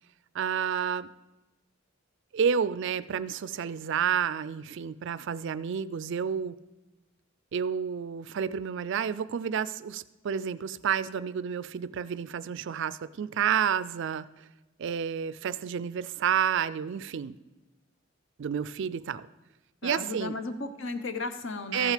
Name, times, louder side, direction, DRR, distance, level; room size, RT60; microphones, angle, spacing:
voice 1, 0.3-1.1 2.3-6.5 7.5-14.3 14.8-17.3 18.4-19.3 19.8-20.4 21.7-21.9, right 7 dB, 60° right, 17 dB, 0.4 m, -30 dB
voice 2, 19.8-21.9, left 3 dB, 65° left, 8 dB, 0.9 m, -35 dB
14.0 x 6.3 x 5.0 m, 1.1 s
head